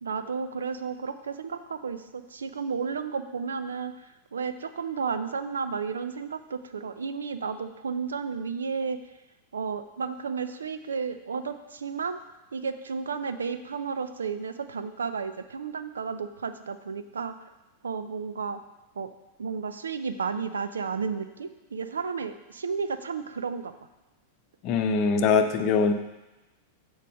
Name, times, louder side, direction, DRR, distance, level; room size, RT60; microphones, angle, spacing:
voice 1, 0.0-3.9 4.3-9.0 9.5-12.2 12.5-17.4 17.8-18.6 19.0-19.1 19.4-23.7, right 5 dB, 80° right, 10 dB, 0.5 m, -32 dB
voice 2, 24.6-25.9, left 5 dB, 45° left, 7 dB, 0.7 m, -22 dB
6.8 x 4.7 x 6.2 m, 1.0 s
figure-of-eight pair, 95°, 0 cm